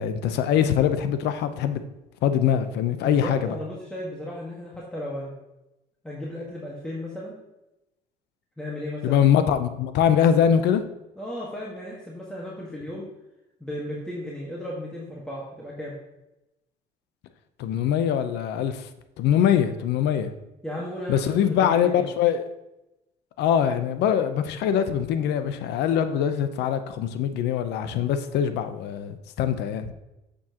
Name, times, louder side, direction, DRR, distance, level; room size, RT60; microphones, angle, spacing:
voice 1, 0.0-1.8 2.2-3.5 9.0-10.8 17.6-18.9 19.2-20.3 21.1-22.4 23.4-29.9, left 9 dB, 80° left, 10 dB, 0.8 m, -23 dB
voice 2, 3.0-5.3 6.0-7.3 8.6-9.2 11.2-13.0 13.6-16.0 20.6-22.1, left 1 dB, 5° left, -5 dB, 1.6 m, -35 dB
8.6 x 7.1 x 3.0 m, 0.93 s
cardioid pair, 110°, 17 cm